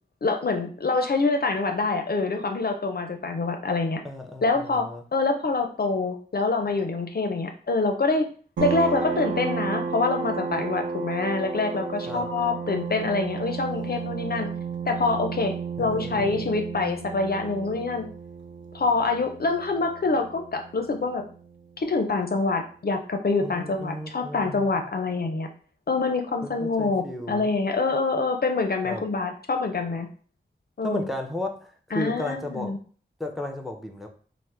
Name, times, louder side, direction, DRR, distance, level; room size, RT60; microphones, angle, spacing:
voice 1, 0.2-4.0 4.4-8.3 8.6-14.5 14.9-15.5 15.8-18.1 18.7-21.2 21.8-25.5 25.9-30.1 30.8-31.1 31.9-32.8, left 3 dB, 50° left, 5 dB, 0.4 m, -26 dB
voice 2, 4.0-5.0 12.1-12.3 15.8-16.5 23.4-24.8 26.4-27.5 28.8-29.0 30.8-32.7 33.2-34.1, left 1 dB, ahead, 4 dB, 0.5 m, -34 dB
sound 1, 8.6-21.8, right 5 dB, 70° right, 0.4 m, -33 dB
2.9 x 2.0 x 3.2 m, 0.42 s
cardioid pair, 45°, 20 cm